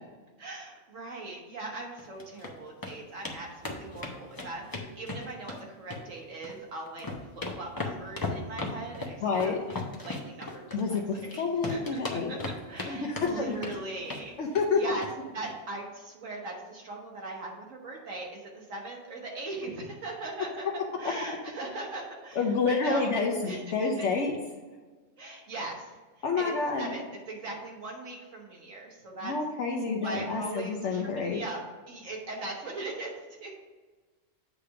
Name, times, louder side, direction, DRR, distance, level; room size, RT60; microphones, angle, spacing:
voice 1, 0.4-7.1 7.3-9.8 10.0-11.0 11.3-11.4 11.7-14.4 14.7-15.1 15.3-20.7 21.0-24.1 25.2-25.9 26.3-26.5 26.8-29.3 29.9-31.6 31.9-33.5, right 2 dB, 75° right, -1 dB, 1.8 m, -40 dB
sound 1, 2.0-2.5 2.8-2.9 3.2-3.4 3.6-5.6 5.9-6.6 6.9-11.3 11.6-12.9 13.2-13.8 14.1-14.3 14.5-14.7 15.0-15.1 15.4-15.5, left 3 dB, 20° left, 0.7 m, -36 dB
voice 2, 9.2-9.6 10.7-12.3 12.8-13.5 14.4-14.8 22.3-24.4 26.2-27.0 29.2-31.4, left 4 dB, 70° left, 0 dB, 1.1 m, -28 dB
8.3 x 3.4 x 5.7 m, 1.3 s
omnidirectional pair, 1.3 m